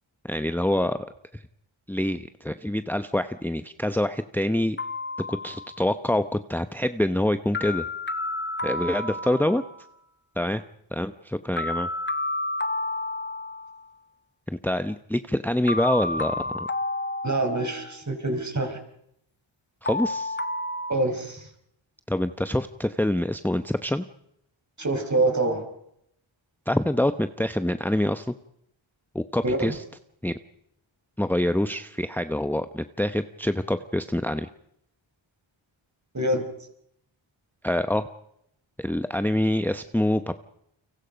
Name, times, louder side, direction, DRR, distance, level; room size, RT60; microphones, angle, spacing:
voice 1, 0.2-1.0 1.3-1.4 1.9-4.8 5.3-6.2 6.5-7.9 8.6-9.6 10.4-10.6 10.9-11.9 14.6-16.7 19.8-20.4 22.1-24.1 26.7-28.3 29.1-29.8 30.2-30.4 31.2-34.5 37.6-38.0 38.8-40.4, left 1 dB, 5° left, 10 dB, 0.9 m, -26 dB
sound 1, 4.8-5.9 7.5-9.9 11.6-13.9 15.7-18.0 19.8-20.9, left 2 dB, 20° left, 1.4 m, -31 dB
voice 2, 17.2-18.8 20.9-21.5 24.8-25.6 29.4-29.7 36.1-36.4, right 2 dB, 35° right, 6 dB, 5.2 m, -25 dB
30.0 x 24.0 x 5.3 m, 0.76 s
cardioid pair, 65°, 48 cm